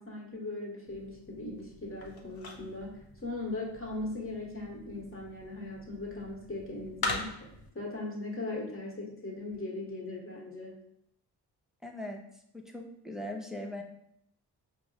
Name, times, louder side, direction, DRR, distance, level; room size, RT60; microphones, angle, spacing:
voice 1, 0.0-10.7, left 2 dB, 30° left, -3 dB, 1.2 m, -39 dB
sound 1, 0.9-7.7, left 3 dB, 55° left, 0.8 m, -42 dB
voice 2, 11.8-12.2 12.5-13.8, left 1 dB, ahead, 1 dB, 0.5 m, -39 dB
4.6 x 2.0 x 2.7 m, 0.74 s
cardioid pair, 55°, 42 cm